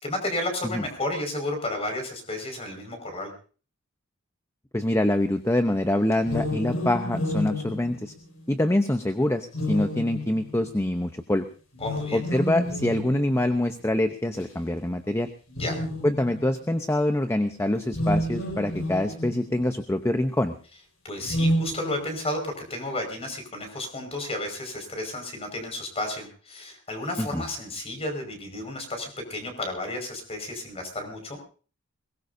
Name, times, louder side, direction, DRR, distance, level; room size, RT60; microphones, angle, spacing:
voice 1, 0.0-3.3 11.8-12.2 15.6-15.8 21.0-31.4, left 1 dB, 30° left, 5 dB, 5.2 m, -32 dB
voice 2, 4.7-8.1 8.5-11.5 12.1-15.3 16.0-20.5 27.2-27.4, left 1 dB, 15° left, 8 dB, 0.8 m, -25 dB
sound 1, 6.2-8.6 9.5-10.8 11.7-13.6 14.4-14.5 15.5-16.5 17.8-19.6 21.2-22.4, equal, 80° left, 5.8 m, -30 dB
22.0 x 19.5 x 2.7 m, 0.39 s
head